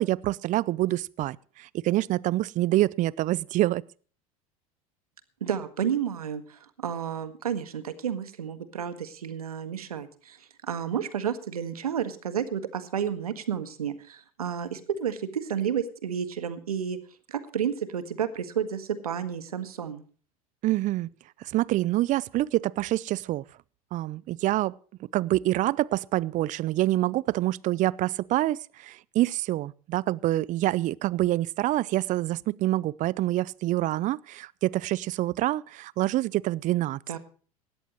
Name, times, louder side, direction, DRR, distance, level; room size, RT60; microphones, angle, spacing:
voice 1, 0.0-3.8 20.6-21.1 21.4-23.4 23.9-24.7 25.1-37.0, right 16 dB, 45° right, 0.6 m, -26 dB
voice 2, 5.4-17.0 17.3-20.0 37.1-37.2, right 8 dB, 90° right, 1.7 m, -31 dB
18.0 x 13.5 x 3.1 m
hypercardioid pair, 85°, 18 cm